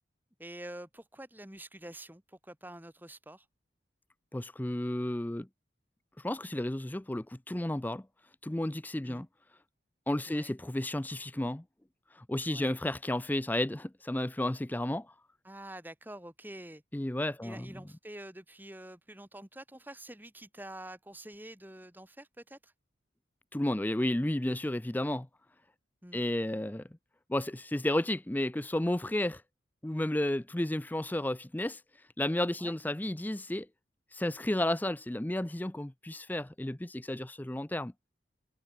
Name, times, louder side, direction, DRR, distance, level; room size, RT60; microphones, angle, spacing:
voice 1, 0.4-3.5 9.0-9.2 10.3-10.6 12.5-12.8 15.4-16.8 17.4-22.7 26.0-26.2 32.6-32.8, right 1 dB, 10° right, 2.4 m, -47 dB
voice 2, 4.3-5.5 6.2-8.0 8.4-9.3 10.1-11.6 12.1-15.1 16.9-17.6 23.5-25.3 26.1-26.8 27.3-29.4 29.8-31.8 32.2-33.7 34.1-37.9, left 1 dB, 10° left, 0.4 m, -32 dB
head